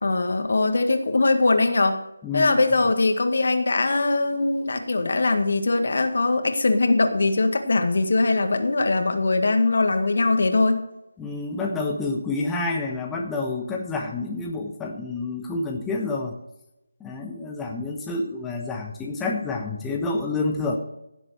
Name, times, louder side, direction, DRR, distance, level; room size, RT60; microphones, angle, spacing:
voice 1, 0.0-2.0 2.3-10.8, left 3 dB, 60° left, 7 dB, 1.8 m, -21 dB
voice 2, 2.2-2.6 11.2-16.4 17.0-20.8, left 3 dB, 10° left, 0 dB, 1.1 m, -28 dB
16.5 x 7.3 x 4.8 m, 0.89 s
figure-of-eight pair, 160°, 0 cm